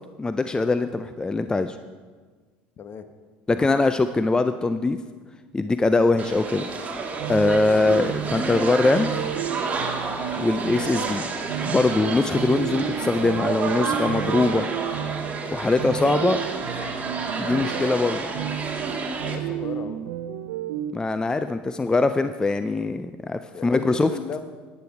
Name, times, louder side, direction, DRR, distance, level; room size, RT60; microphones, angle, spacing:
voice 1, 0.2-1.8 3.5-5.0 5.5-6.7 7.3-9.1 10.4-11.2 11.7-14.7 15.5-16.4 17.4-18.2 20.9-24.1, left 3 dB, 15° left, 10 dB, 0.4 m, -22 dB
sound 1, 6.2-19.4, right 4 dB, 30° right, 1.7 m, -30 dB
sound 2, 7.2-20.9, right 11 dB, 80° right, 0.6 m, -32 dB
voice 2, 19.2-20.1 21.5-21.6 23.5-24.4, left 7 dB, 45° left, 9 dB, 0.9 m, -36 dB
10.5 x 9.7 x 4.8 m, 1.5 s
hypercardioid pair, 85°, 5 cm